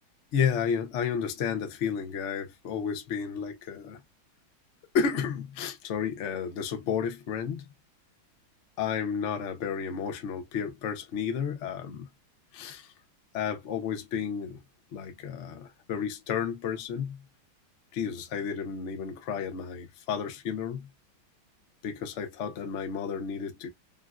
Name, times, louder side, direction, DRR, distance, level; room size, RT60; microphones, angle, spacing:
voice 1, 0.3-4.0 4.9-7.7 8.8-12.1 12.5-12.9 13.3-14.6 14.9-17.2 17.9-20.9 21.8-23.7, left 7 dB, 70° left, 0.6 m, -32 dB
3.8 x 2.1 x 2.3 m
omnidirectional pair, 2.3 m